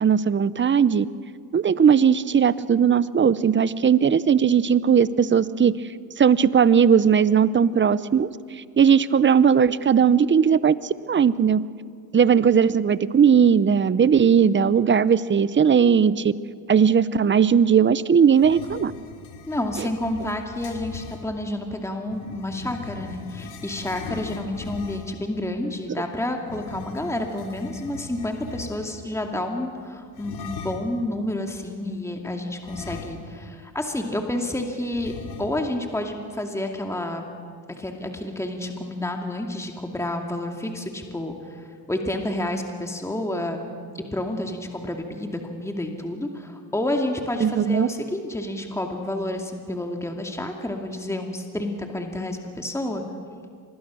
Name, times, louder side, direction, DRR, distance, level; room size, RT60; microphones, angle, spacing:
voice 1, 0.0-1.1 1.5-5.8 6.2-8.3 8.8-11.6 12.1-16.3 16.7-18.9 47.4-47.9, right 7 dB, 25° right, 17 dB, 0.8 m, -18 dB
sound 1, 18.3-21.2 22.1-25.2 26.4-29.1 30.1-31.0 32.6-33.5 33.8-33.9 34.9-35.8, left 5 dB, 70° left, 2.9 m, -40 dB
voice 2, 19.5-35.1 35.4-37.2 37.8-43.6 43.9-53.0, left 1 dB, 5° left, 3 dB, 2.4 m, -29 dB
25.5 x 20.0 x 6.3 m, 2.1 s
supercardioid pair, 75°, 42 cm